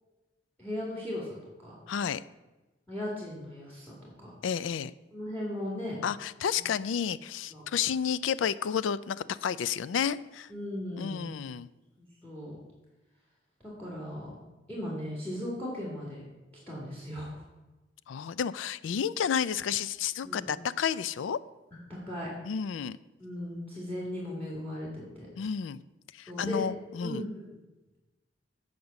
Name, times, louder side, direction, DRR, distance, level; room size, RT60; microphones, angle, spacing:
voice 1, 0.6-1.8 2.9-4.3 5.1-6.0 6.6-6.7 7.5-7.6 10.5-11.3 12.0-12.6 13.6-14.4 14.7-16.3 16.7-17.4 20.2-20.5 21.9-22.3 23.2-25.3 26.3-26.7 27.0-27.5, left 1 dB, 10° left, -4 dB, 2.0 m, -37 dB
voice 2, 1.9-2.2 4.4-4.9 6.0-10.5 11.0-11.7 18.1-21.4 22.4-23.0 25.4-25.8 26.1-27.2, left 7 dB, 85° left, 17 dB, 0.4 m, -31 dB
8.1 x 5.1 x 6.9 m, 1.1 s
head